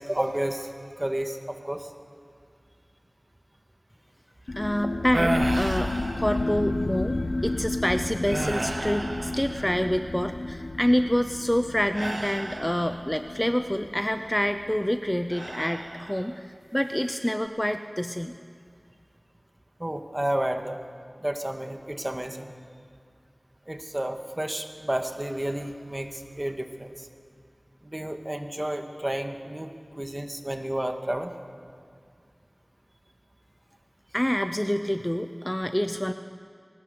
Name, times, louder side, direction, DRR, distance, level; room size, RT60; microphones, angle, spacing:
voice 1, 0.0-1.9 19.8-20.8 21.2-22.5 23.7-27.1 27.8-29.7 30.0-31.3, right 1 dB, 30° right, 5 dB, 1.8 m, -31 dB
sound 1, 4.5-15.6, left 2 dB, 70° left, 0.8 m, -32 dB
voice 2, 4.5-18.3 34.1-36.1, equal, 15° left, 8 dB, 0.6 m, -27 dB
sound 2, 5.1-6.8 7.4-7.7 8.2-10.1 11.9-13.3 15.3-16.4 16.8-17.3, right 2 dB, 55° right, 0.7 m, -34 dB
21.5 x 19.5 x 6.8 m, 2.2 s
wide cardioid pair, 45°, 0 cm